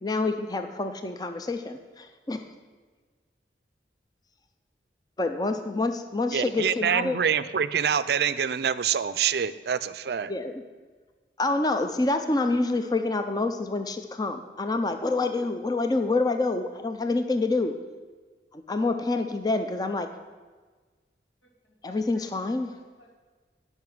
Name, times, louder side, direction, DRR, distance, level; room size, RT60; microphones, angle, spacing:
voice 1, 0.0-2.4 5.2-7.2 10.3-10.6 11.4-17.7 18.5-20.1 21.8-22.7, left 2 dB, 20° left, 7 dB, 0.4 m, -27 dB
voice 2, 6.3-10.3, right 7 dB, 60° right, 15 dB, 0.4 m, -26 dB
voice 3, 21.4-23.2, equal, 85° left, 1 dB, 1.9 m, -58 dB
11.0 x 5.5 x 7.7 m, 1.4 s
head